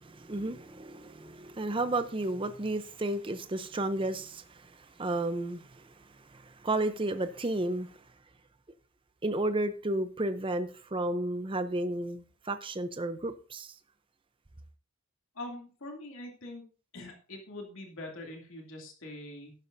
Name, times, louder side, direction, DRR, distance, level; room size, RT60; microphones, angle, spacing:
voice 1, 0.0-7.9 9.2-13.7, right 2 dB, 25° right, 0.6 m, -33 dB
voice 2, 15.3-16.6 16.9-19.5, left 1 dB, 70° left, 2.6 m, -43 dB
12.5 x 10.5 x 2.6 m
head